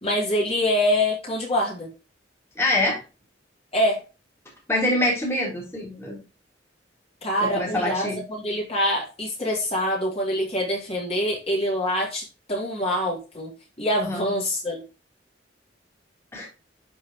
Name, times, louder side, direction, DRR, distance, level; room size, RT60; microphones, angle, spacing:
voice 1, 0.0-1.9 3.7-4.0 7.2-13.5 13.8-14.8, equal, 35° left, -3 dB, 3.2 m, -25 dB
voice 2, 2.6-3.0 4.7-6.2 7.4-8.2 14.0-14.3 16.3-16.5, left 1 dB, 15° left, -3 dB, 3.1 m, -25 dB
12.0 x 4.7 x 3.0 m, 0.31 s
head